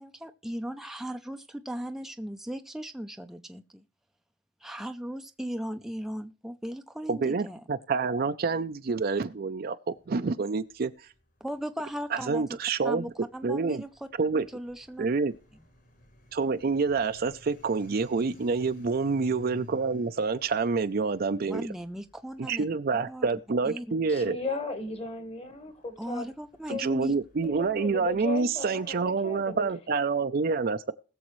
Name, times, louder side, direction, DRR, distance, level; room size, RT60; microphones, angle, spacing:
voice 1, 0.0-3.8 4.6-7.6 11.4-12.4 12.8-13.9 14.4-15.1 15.5-15.6 21.4-22.6 22.9-23.3 23.6-23.8 26.0-27.2, equal, ahead, 0.5 m, -37 dB
voice 2, 7.1-10.9 12.1-13.0 13.4-13.8 14.2-14.5 15.0-15.3 16.3-21.7 22.4-24.4 26.7-30.9, right 4 dB, 55° right, 0.5 m, -27 dB
sound 1, 9.9-29.7, left 2 dB, 55° left, 5.3 m, -57 dB
voice 3, 24.1-26.3 26.7-26.8 27.4-29.6, left 2 dB, 30° left, 1.5 m, -36 dB
20.5 x 6.9 x 3.1 m
head